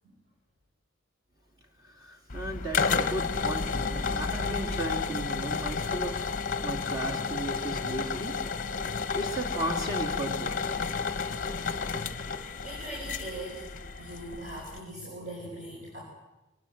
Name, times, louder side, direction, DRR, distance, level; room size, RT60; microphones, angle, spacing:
voice 1, 1.8-8.4 8.7-8.8 9.1-10.6, right 1 dB, 20° right, 1 dB, 2.7 m, -36 dB
sound 1, 2.3-14.8, left 5 dB, 35° left, 0.9 m, -31 dB
voice 2, 12.6-13.7 14.0-16.0, right 1 dB, 35° right, -3 dB, 5.6 m, -40 dB
24.0 x 19.5 x 7.8 m, 1.0 s
head